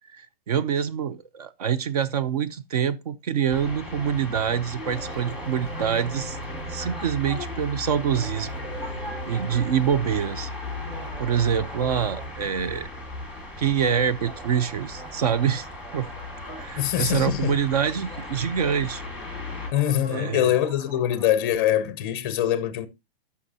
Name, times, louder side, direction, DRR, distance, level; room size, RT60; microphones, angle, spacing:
voice 1, 0.1-6.4 6.7-8.5 8.8-9.0 9.3-10.5 11.2-12.9 13.6-15.7 15.9-16.1 16.6-19.0 20.1-20.6, right 8 dB, 40° right, 0.5 m, -25 dB
sound 1, 3.5-19.7, left 2 dB, 5° right, 1.5 m, -36 dB
sound 2, 4.8-7.0 8.1-9.9 10.7-12.4 12.6-12.7 14.2-16.8 17.8-17.9 18.1-21.4, right 2 dB, 75° right, 4.0 m, -42 dB
voice 2, 16.8-17.6 19.7-22.9, left 11 dB, 25° left, 0.5 m, -23 dB
12.5 x 5.5 x 2.7 m
hypercardioid pair, 170°, 31 cm